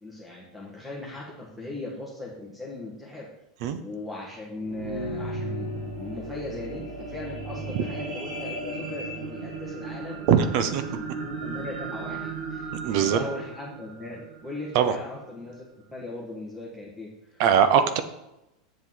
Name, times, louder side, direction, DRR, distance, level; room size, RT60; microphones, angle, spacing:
voice 1, 0.0-3.2 3.8-17.4, left 2 dB, 5° right, -5 dB, 1.5 m, -39 dB
sound 1, 4.4-14.9 15.5-15.6, right 3 dB, 75° right, 2.1 m, -35 dB
voice 2, 10.3-10.8 12.8-13.2 14.7-14.9 17.4-18.0, right 8 dB, 55° right, 10 dB, 0.9 m, -21 dB
7.7 x 7.2 x 4.0 m, 0.90 s
supercardioid pair, 140°, 4 cm